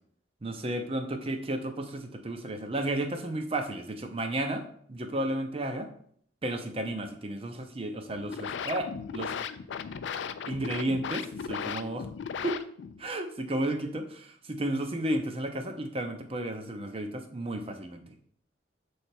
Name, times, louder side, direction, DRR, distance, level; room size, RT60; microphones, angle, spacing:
voice 1, 0.4-5.9 6.4-9.3 10.5-12.1 12.4-12.6 13.0-18.0, right 1 dB, 30° right, 6 dB, 0.7 m, -33 dB
sound 1, 8.0-13.0, left 6 dB, 75° left, 0.4 m, -37 dB
6.9 x 3.3 x 4.3 m, 0.62 s
head